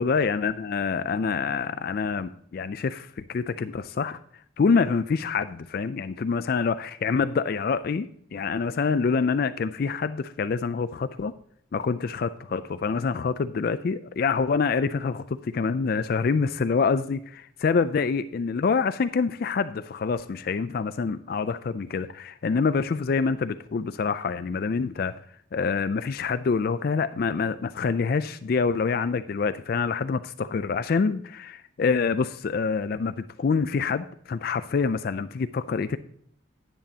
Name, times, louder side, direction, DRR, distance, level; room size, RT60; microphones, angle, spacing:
voice 1, 0.0-4.2 4.6-11.3 11.7-25.1 25.5-36.0, left 5 dB, 45° left, 13 dB, 0.3 m, -26 dB
10.0 x 8.9 x 2.8 m, 0.66 s
head